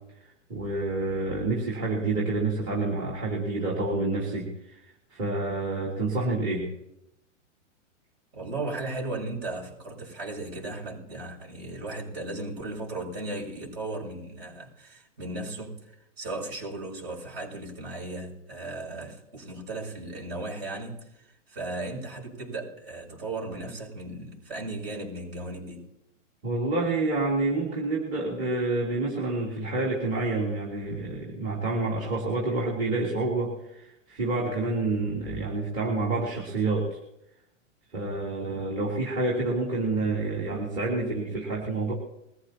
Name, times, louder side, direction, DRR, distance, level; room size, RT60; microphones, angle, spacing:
voice 1, 0.2-4.8 5.1-6.7 26.4-36.9 37.9-41.9, right 2 dB, 30° right, 3.2 m, -28 dB
voice 2, 8.3-25.8, right 2 dB, 55° right, 6.8 m, -36 dB
22.0 x 14.5 x 2.9 m
hypercardioid pair, 145°, 37 cm